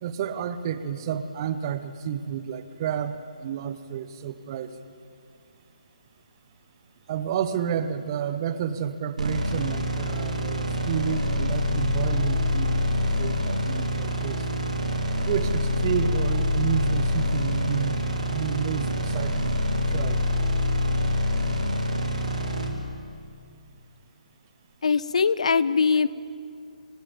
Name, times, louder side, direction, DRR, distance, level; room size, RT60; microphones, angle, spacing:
voice 1, 0.0-4.7 7.1-12.8 13.2-14.4 15.2-20.2, right 8 dB, 30° right, 12 dB, 1.3 m, -30 dB
sound 1, 9.2-22.7, left 1 dB, 65° right, 3.6 m, -26 dB
voice 2, 24.8-26.1, left 5 dB, 55° left, 18 dB, 0.8 m, -21 dB
29.5 x 18.0 x 8.7 m, 2.3 s
figure-of-eight pair, 135°, 4 cm